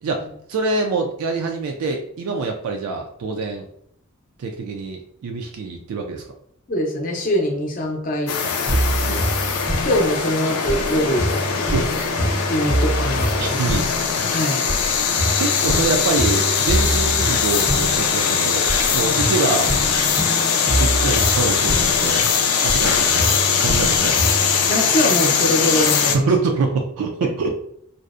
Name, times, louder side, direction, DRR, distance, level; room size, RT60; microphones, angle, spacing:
voice 1, 0.0-3.7 4.4-6.2 8.4-8.5 8.9-9.4 11.7-11.9 13.4-13.9 15.0-19.7 20.8-22.2 22.6-24.2 26.1-27.5, right 4 dB, 80° right, 2 dB, 0.3 m, -25 dB
voice 2, 6.7-8.3 9.1-9.2 9.8-11.3 12.5-13.6 14.3-14.6 19.0-19.2 24.7-26.3, equal, 40° left, 0 dB, 0.5 m, -23 dB
sound 1, 8.3-26.2, left 6 dB, 90° left, 0.4 m, -21 dB
sound 2, 8.7-24.7, right 1 dB, 10° right, 0.5 m, -26 dB
2.5 x 2.0 x 2.4 m, 0.68 s
head